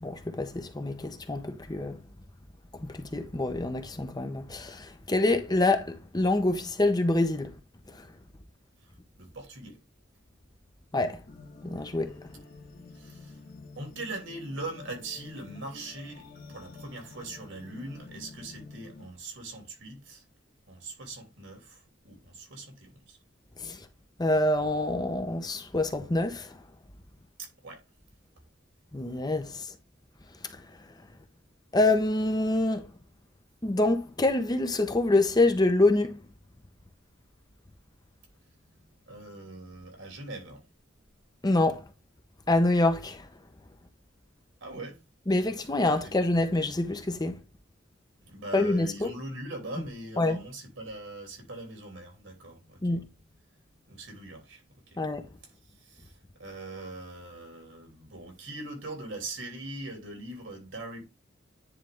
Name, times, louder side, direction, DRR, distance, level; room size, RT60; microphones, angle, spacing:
voice 1, 0.0-2.0 2.7-7.5 7.9-8.1 10.9-11.2 11.6-12.1 23.6-23.8 24.2-26.6 28.9-29.7 31.7-32.9 33.6-36.2 41.4-41.8 42.5-43.3 45.3-47.4 48.5-49.1 50.2-50.4 52.8-53.0 55.0-55.3, left 2 dB, 20° left, 0.8 m, -26 dB
voice 2, 9.2-9.8 12.9-13.4 13.8-20.2 20.7-23.2 27.4-27.8 38.5-40.6 44.6-45.0 46.0-46.1 48.2-53.0 53.8-55.0 55.4-61.0, right 2 dB, 80° right, 2.9 m, -41 dB
sound 1, 11.3-19.1, left 3 dB, 50° left, 1.8 m, -49 dB
9.9 x 3.3 x 3.4 m
head